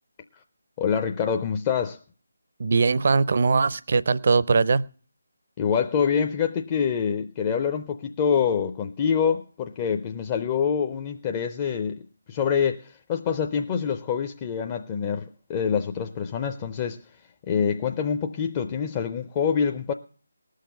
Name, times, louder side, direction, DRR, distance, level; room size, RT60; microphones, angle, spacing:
voice 1, 0.8-2.0 5.6-12.0 12.3-15.2 15.5-17.0 17.5-19.9, left 7 dB, 20° left, 0.5 m, -25 dB
voice 2, 2.6-4.8, right 4 dB, 45° right, 0.5 m, -21 dB
19.0 x 6.5 x 6.6 m
figure-of-eight pair, 155°, 0 cm